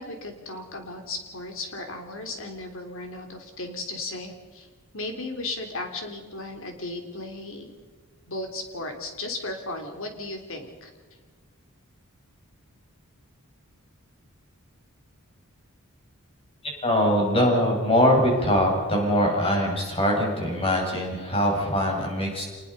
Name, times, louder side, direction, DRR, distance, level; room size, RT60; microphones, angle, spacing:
voice 1, 0.0-4.7 4.9-7.7 8.3-10.9, left 2 dB, 65° left, 5 dB, 3.4 m, -35 dB
voice 2, 16.8-22.4, equal, 25° left, 0 dB, 6.5 m, -22 dB
27.0 x 20.5 x 5.5 m, 1.4 s
head